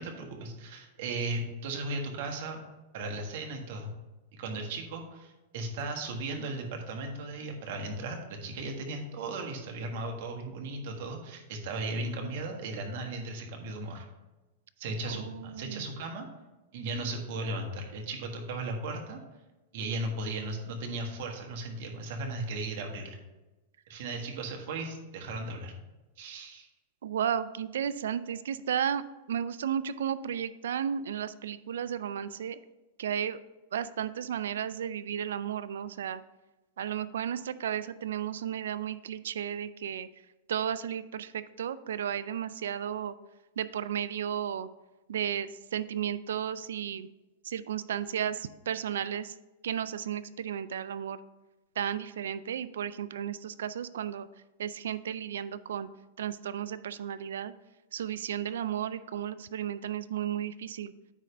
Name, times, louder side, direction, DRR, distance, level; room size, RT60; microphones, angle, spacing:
voice 1, 0.0-2.6 2.9-3.9 4.3-14.1 14.8-16.3 16.7-19.2 19.7-23.2 23.9-25.7 26.2-26.7, right 2 dB, 60° right, 3 dB, 1.4 m, -36 dB
voice 2, 15.1-15.9 27.0-29.0 29.3-32.6 33.0-33.4 33.7-36.2 36.8-40.1 40.5-43.1 43.6-44.7 45.1-47.1 47.5-49.3 49.6-51.2 51.8-54.3 54.6-55.9 56.2-57.5 57.9-60.9, right 9 dB, 85° right, 15 dB, 0.4 m, -33 dB
9.1 x 3.3 x 5.1 m, 1.1 s
supercardioid pair, 145°, 0 cm